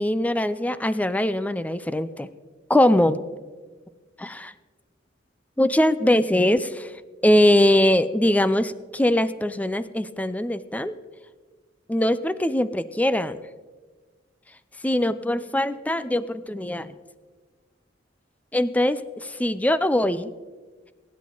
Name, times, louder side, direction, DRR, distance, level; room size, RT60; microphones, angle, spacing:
voice 1, 0.0-2.3 2.7-3.2 4.2-4.5 5.6-6.9 7.2-10.9 11.9-13.4 14.8-16.9 18.5-20.3, left 1 dB, 10° left, 14 dB, 0.5 m, -22 dB
23.5 x 10.5 x 3.9 m, 1.4 s
head